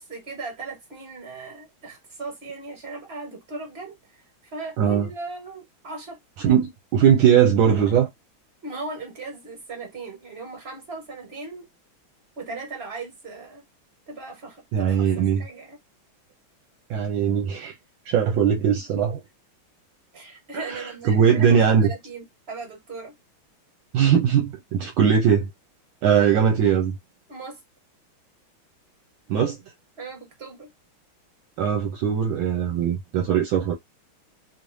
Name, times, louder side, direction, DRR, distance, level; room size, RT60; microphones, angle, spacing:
voice 1, 0.0-4.2 4.5-6.2 6.4-6.5 8.6-11.7 12.4-13.6 14.1-15.1 15.4-15.8 20.1-23.1 27.3-27.6 30.0-30.7, right 3 dB, 30° right, 1.7 m, -38 dB
voice 2, 4.8-5.1 6.4-8.1 14.7-15.4 16.9-17.7 18.1-19.2 20.5-21.9 23.9-25.5 26.0-26.9 29.3-29.6 31.6-33.7, right 8 dB, 75° right, 1.5 m, -20 dB
3.4 x 3.2 x 2.6 m
omnidirectional pair, 2.3 m